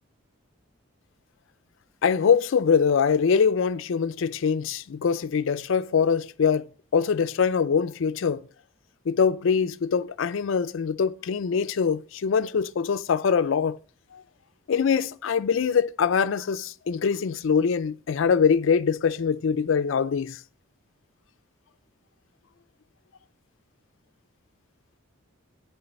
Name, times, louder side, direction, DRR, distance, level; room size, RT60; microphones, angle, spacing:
voice 1, 2.0-8.5 9.1-13.8 14.1-14.2 14.7-20.4, left 6 dB, 65° left, 0.4 m, -23 dB
8.1 x 5.5 x 4.0 m
head